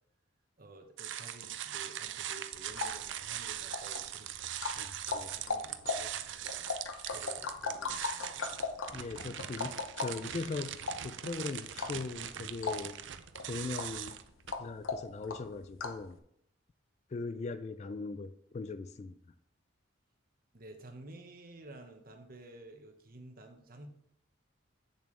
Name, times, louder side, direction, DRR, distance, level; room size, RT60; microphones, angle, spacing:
voice 1, 0.6-8.5 20.5-23.9, right 2 dB, 45° right, 5 dB, 1.0 m, -53 dB
sound 1, 1.0-14.5, right 11 dB, 65° right, 0.5 m, -41 dB
sound 2, 2.5-16.1, left 4 dB, 85° left, 0.8 m, -40 dB
voice 2, 4.7-5.3 8.9-13.0 13.4-14.2 14.6-16.2 17.1-19.2, left 3 dB, 35° left, 12 dB, 0.3 m, -40 dB
8.3 x 7.1 x 3.2 m, 0.72 s
head